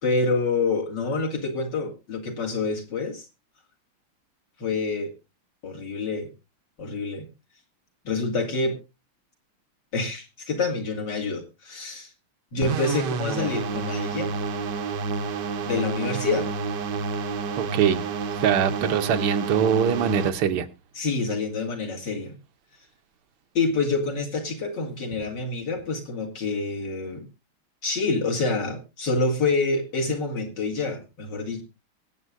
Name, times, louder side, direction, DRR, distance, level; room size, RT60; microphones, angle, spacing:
voice 1, 0.0-3.3 4.6-5.1 5.6-6.3 6.8-7.3 8.0-8.8 9.9-12.1 12.5-14.3 15.6-16.5 21.0-22.4 23.5-27.3 27.8-31.6, left 3 dB, 55° left, 1 dB, 2.6 m, -27 dB
sound 1, 12.6-20.3, right 4 dB, 60° right, 1.3 m, -29 dB
voice 2, 17.6-18.0 18.4-20.7, right 8 dB, 80° right, 8 dB, 1.8 m, -23 dB
23.0 x 8.4 x 2.5 m, 0.26 s
omnidirectional pair, 2.4 m